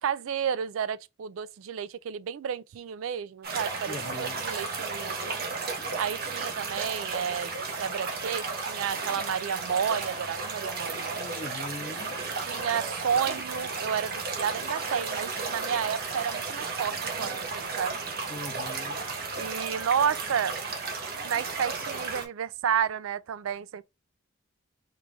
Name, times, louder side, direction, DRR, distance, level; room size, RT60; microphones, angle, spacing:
voice 1, 0.0-5.4 6.0-7.5 7.8-11.2 12.3-18.0 19.4-20.5 21.2-23.8, right 8 dB, 80° right, 0.4 m, -31 dB
sound 1, 3.4-22.3, right 4 dB, 50° right, 1.1 m, -34 dB
voice 2, 3.9-4.5 11.2-12.0 18.3-19.0, left 3 dB, 35° left, 0.3 m, -40 dB
4.6 x 2.4 x 3.7 m
head